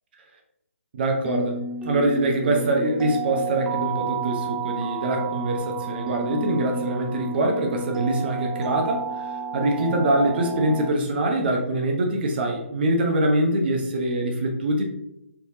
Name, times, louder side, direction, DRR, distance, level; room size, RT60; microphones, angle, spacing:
voice 1, 0.9-1.6 1.8-14.8, right 1 dB, 45° right, 2 dB, 0.9 m, -24 dB
sound 1, 1.2-10.9, right 4 dB, 10° right, 0.4 m, -31 dB
4.6 x 3.4 x 2.8 m, 0.83 s
figure-of-eight pair, 145°, 8 cm